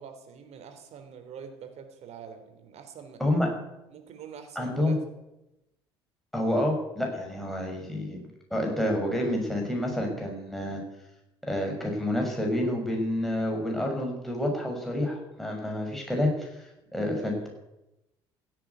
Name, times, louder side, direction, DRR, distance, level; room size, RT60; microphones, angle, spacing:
voice 1, 0.0-3.2 3.9-5.0 16.9-17.5, right 7 dB, 55° right, 7 dB, 3.6 m, -45 dB
voice 2, 4.5-5.0 6.3-8.2 8.5-10.8 11.4-17.5, left 1 dB, ahead, 0 dB, 6.3 m, -28 dB
16.5 x 8.9 x 9.5 m, 0.93 s
hypercardioid pair, 60°, 13 cm